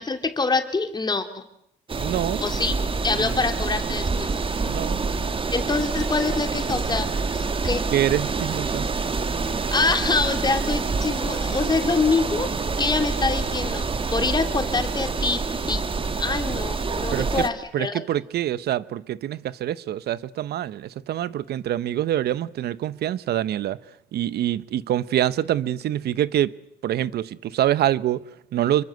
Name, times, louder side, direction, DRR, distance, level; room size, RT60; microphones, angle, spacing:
voice 1, 0.0-1.4 2.4-2.7 3.0-4.3 5.5-7.1 7.3-7.9 9.7-13.9 14.1-15.8 16.1-17.9, left 3 dB, 25° left, 3.1 m, -25 dB
sound 1, 1.9-17.5, right 4 dB, 30° right, 2.0 m, -27 dB
voice 2, 2.0-2.4 3.2-3.4 4.6-5.0 7.9-8.9 17.1-17.4 17.7-23.8 24.1-26.5 26.8-28.8, right 12 dB, 70° right, 1.0 m, -25 dB
27.5 x 23.5 x 7.9 m
cardioid pair, 95°, 17 cm